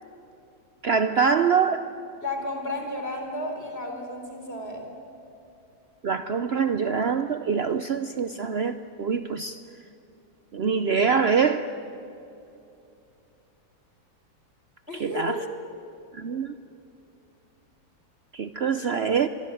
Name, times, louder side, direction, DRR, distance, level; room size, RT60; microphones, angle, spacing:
voice 1, 0.8-1.9 6.0-9.6 10.5-11.7 14.9-15.4 16.1-16.5 18.3-19.3, right 6 dB, 75° right, 11 dB, 0.5 m, -24 dB
voice 2, 2.2-4.8 14.9-15.4, left 2 dB, 30° left, 3 dB, 4.6 m, -32 dB
26.0 x 22.5 x 9.2 m, 2.7 s
omnidirectional pair, 2.0 m